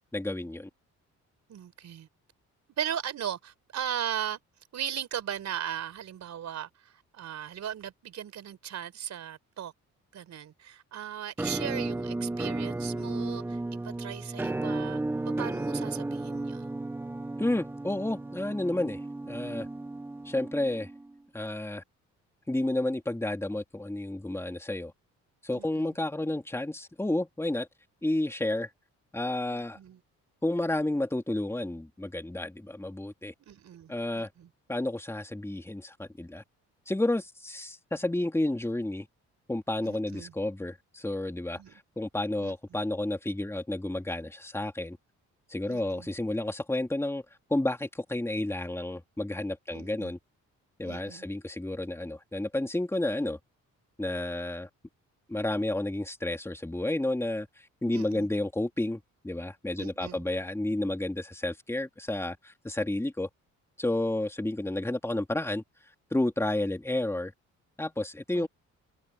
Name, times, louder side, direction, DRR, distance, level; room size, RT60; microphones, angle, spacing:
voice 1, 0.1-0.7 17.4-19.7 20.2-20.9 21.3-21.8 22.5-24.9 25.4-27.7 28.0-28.7 29.1-29.8 30.4-33.3 33.9-34.3 34.7-36.4 36.9-39.1 39.5-45.0 45.5-47.2 47.5-50.2 50.8-53.4 54.0-54.7 55.3-57.5 57.8-63.3 63.8-65.6 66.1-67.3 67.8-68.5, left 1 dB, 10° left, 3.2 m, -31 dB
voice 2, 1.5-2.1 2.8-4.4 4.7-6.7 7.1-9.7 10.1-13.6 13.8-15.0 15.3-16.7 25.5-25.9 29.5-30.0 33.4-34.5 39.8-40.3 41.5-41.8 42.4-42.5 45.7-46.1 49.7-50.1 50.8-51.3 57.9-58.3 59.8-60.2 68.3-68.5, right 9 dB, 65° right, 4.2 m, -37 dB
Musical instrument, 11.4-21.2, right 2 dB, 5° right, 0.5 m, -34 dB
cardioid pair, 90°, 30 cm